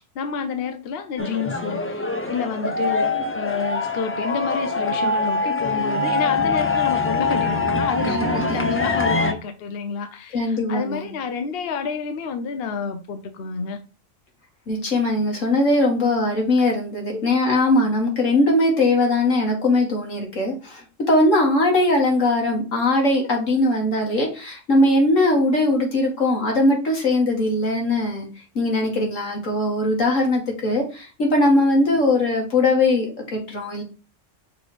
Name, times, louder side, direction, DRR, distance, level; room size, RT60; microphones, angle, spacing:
voice 1, 0.1-2.0 2.3-13.8, left 5 dB, 55° left, 0.9 m, -29 dB
sound 1, 1.2-9.3, left 3 dB, 20° left, 0.4 m, -23 dB
voice 2, 10.3-11.1 14.7-28.3 28.6-33.8, left 2 dB, 85° left, 2.3 m, -20 dB
6.1 x 3.3 x 4.9 m
omnidirectional pair, 1.3 m